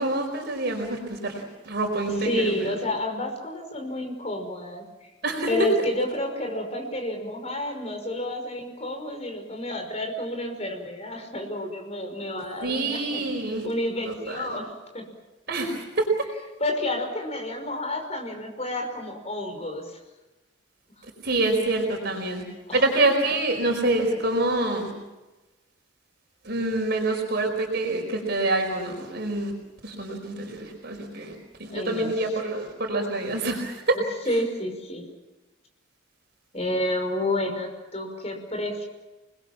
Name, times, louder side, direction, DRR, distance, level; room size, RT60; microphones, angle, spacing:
voice 1, 0.0-2.7 5.2-5.5 12.6-13.7 14.0-14.6 15.5-16.1 21.2-22.4 22.7-24.9 26.4-29.5 29.8-34.0, right 2 dB, 55° right, 2 dB, 4.8 m, -26 dB
voice 2, 2.2-5.1 5.5-13.3 13.6-14.7 14.9-15.1 16.6-19.9 22.7-22.9 31.7-32.1 34.3-35.1 36.5-38.8, left 1 dB, 35° left, 4 dB, 5.7 m, -30 dB
29.0 x 21.0 x 7.4 m, 1.1 s
head